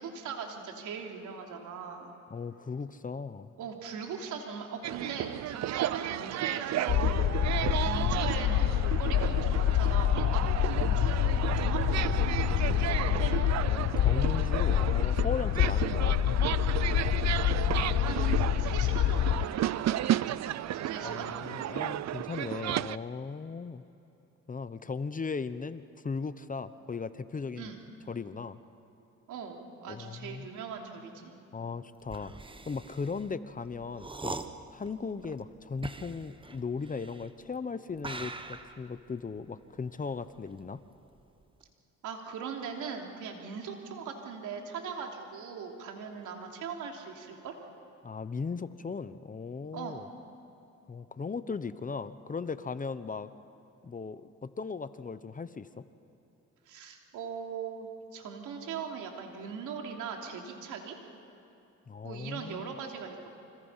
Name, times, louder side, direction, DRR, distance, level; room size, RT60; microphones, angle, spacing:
voice 1, 0.0-2.1 3.6-7.3 7.8-13.4 17.4-21.3 27.6-27.8 29.3-31.3 42.0-47.5 49.7-50.0 56.7-61.0 62.0-63.3, right 6 dB, 85° right, 2 dB, 3.1 m, -40 dB
voice 2, 2.3-3.5 13.7-16.2 21.0-23.8 24.5-27.7 28.1-28.6 29.9-30.5 31.5-32.3 32.7-34.4 34.7-40.8 48.0-50.1 50.9-53.3 53.8-55.8 61.9-62.7, left 5 dB, 25° left, 13 dB, 0.9 m, -37 dB
sound 1, 4.8-23.0, right 13 dB, 60° right, 0.6 m, -33 dB
sound 2, 6.9-19.5, left 12 dB, 60° left, 0.6 m, -27 dB
sound 3, 32.0-37.5 38.0-40.9 41.2-41.6, right 3 dB, 15° right, 1.2 m, -43 dB
28.5 x 25.5 x 5.7 m, 2.8 s
cardioid pair, 90°, 30 cm